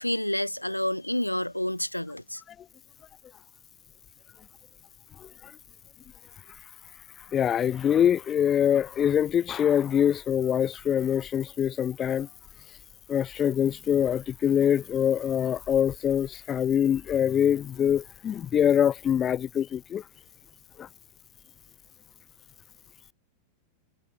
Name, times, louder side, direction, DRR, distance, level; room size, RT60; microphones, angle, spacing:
voice 1, 0.0-2.4, left 1 dB, 90° left, 1.3 m, -29 dB
voice 2, 5.2-5.5 7.3-12.3 13.1-20.0 20.8-20.9, left 9 dB, 25° left, 0.5 m, -24 dB
figure-of-eight pair, 90°, 0 cm